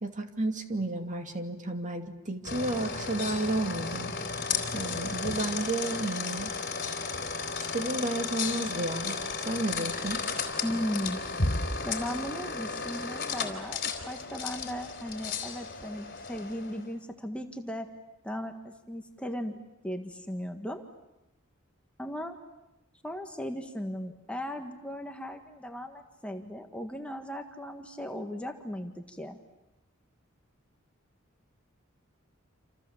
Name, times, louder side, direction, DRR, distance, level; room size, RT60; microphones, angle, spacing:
voice 1, 0.0-4.1 4.7-6.5 7.7-10.2, right 2 dB, 35° right, 5 dB, 2.4 m, -32 dB
sound 1, 2.4-16.9, left 4 dB, 50° left, 3.6 m, -34 dB
voice 2, 10.6-11.2 11.8-17.9 18.2-19.6 19.8-20.8 22.0-22.4 23.0-29.4, equal, 5° left, 4 dB, 1.6 m, -37 dB
28.0 x 28.0 x 7.3 m, 0.94 s
head